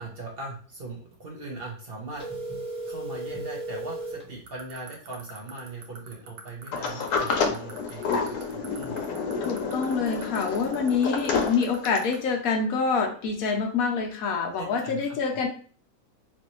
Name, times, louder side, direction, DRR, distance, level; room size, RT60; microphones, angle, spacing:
voice 1, 0.0-2.2 2.9-9.0 14.5-15.2, right 2 dB, 55° right, -1 dB, 0.7 m, -40 dB
sound 1, 2.2-4.3, right 1 dB, 5° right, 1.0 m, -35 dB
sound 2, 4.5-12.1, right 8 dB, 75° right, 1.2 m, -43 dB
Sliding door, 6.7-12.2, left 5 dB, 85° left, 1.2 m, -29 dB
voice 2, 9.4-15.5, left 5 dB, 70° left, 2 dB, 1.0 m, -26 dB
3.0 x 2.6 x 2.9 m, 0.42 s
omnidirectional pair, 1.7 m